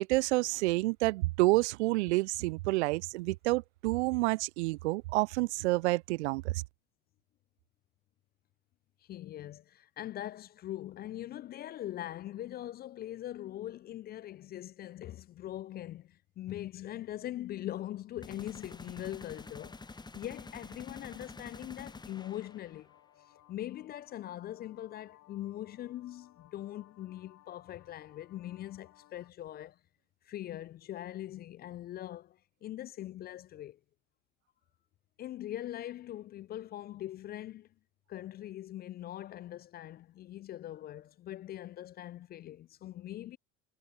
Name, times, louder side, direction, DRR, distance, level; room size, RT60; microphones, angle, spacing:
voice 1, 0.0-6.6, right 21 dB, 65° right, 0.6 m, -29 dB
voice 2, 9.1-19.8 20.1-22.9 23.5-29.8 30.2-33.8 35.2-37.7 38.1-43.4, left 13 dB, 30° left, 0.4 m, -42 dB
sound 1, 18.2-23.0, left 3 dB, 10° left, 1.2 m, -48 dB
sound 2, 22.2-29.3, left 14 dB, 50° left, 3.8 m, -62 dB
figure-of-eight pair, 70°, 36 cm